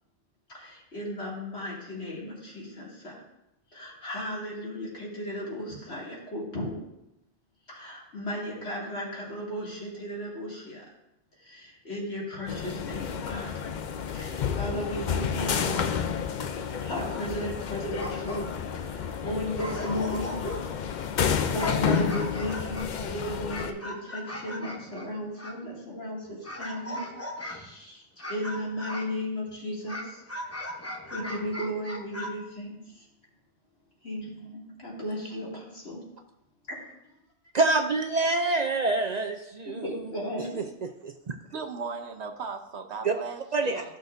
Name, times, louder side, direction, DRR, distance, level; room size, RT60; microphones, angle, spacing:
voice 1, 0.5-3.2 3.7-6.8 7.7-10.8 11.4-13.7 14.1-15.9 16.8-18.4 18.8-20.4 21.2-27.0 27.4-30.2 31.1-33.0 34.0-36.0 36.7-37.1 39.7-40.6, equal, 75° left, 2.8 m, -35 dB
sound 1, 12.5-23.7, left 7 dB, 55° left, 0.6 m, -30 dB
sound 2, 17.8-18.7 19.2-19.3 19.6-20.8 21.3-25.6 26.4-27.7 28.2-29.2 29.9-32.3, left 1 dB, 15° left, 0.8 m, -38 dB
voice 2, 37.5-40.1 40.6-41.3 43.0-43.1 43.5-43.8, right 3 dB, 50° right, 0.6 m, -27 dB
voice 3, 41.5-43.9, right 5 dB, 80° right, 1.1 m, -37 dB
14.5 x 6.2 x 2.6 m
omnidirectional pair, 1.1 m